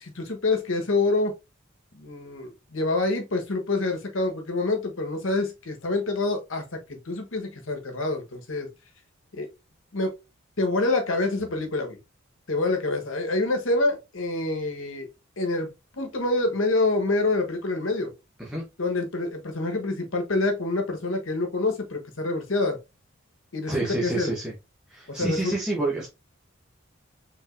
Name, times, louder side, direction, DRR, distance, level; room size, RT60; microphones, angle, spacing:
voice 1, 0.0-1.3 1.9-8.7 9.3-9.5 9.9-10.1 10.6-12.0 12.5-15.1 15.4-15.7 16.0-18.1 18.8-22.8 23.5-24.3 25.2-25.6, left 2 dB, 75° left, 1.2 m, -26 dB
voice 2, 23.7-24.5 24.9-26.1, right 2 dB, 5° right, 0.9 m, -28 dB
4.9 x 3.7 x 2.5 m
head